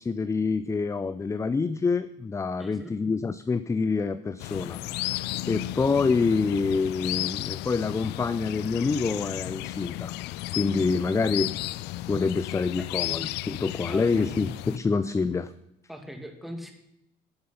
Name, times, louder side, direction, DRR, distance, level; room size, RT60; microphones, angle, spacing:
voice 1, 0.0-10.1 10.5-11.5 12.1-15.5, left 4 dB, 15° left, 13 dB, 0.5 m, -27 dB
voice 2, 2.6-2.9 12.8-13.2 13.9-14.4 15.9-16.7, equal, ahead, 5 dB, 2.3 m, -41 dB
sound 1, 4.4-14.8, left 17 dB, 85° left, 0.4 m, -34 dB
12.0 x 9.7 x 5.6 m, 0.80 s
cardioid pair, 110°, 17 cm